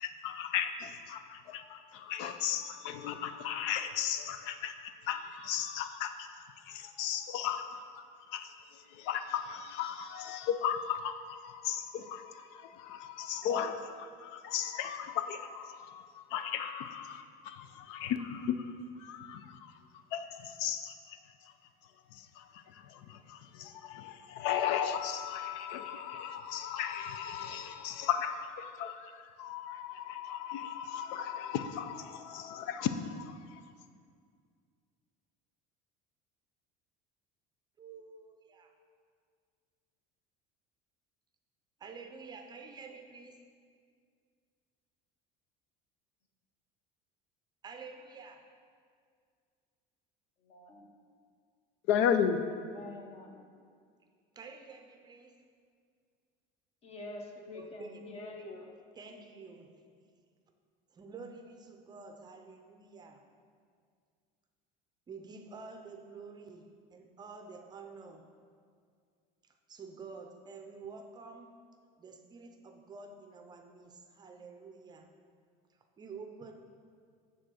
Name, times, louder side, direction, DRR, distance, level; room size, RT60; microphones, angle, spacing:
voice 1, 0.0-8.0 8.3-8.5 8.9-18.7 19.0-19.7 20.1-21.2 22.1-33.6 51.9-52.4, left 8 dB, 80° left, 9 dB, 0.5 m, -36 dB
voice 2, 37.8-38.7 41.8-43.4 47.6-48.5 54.4-55.4 57.5-58.0 58.3-58.4 59.0-59.8 60.9-63.2 65.1-68.3 69.4-71.6 72.0-75.1 75.7-76.5, right 4 dB, 25° right, 5 dB, 0.5 m, -49 dB
voice 3, 50.4-50.9 52.5-53.5 56.8-58.7, left 2 dB, 35° left, 2 dB, 1.0 m, -46 dB
9.0 x 3.8 x 6.3 m, 2.1 s
cardioid pair, 150°, 18 cm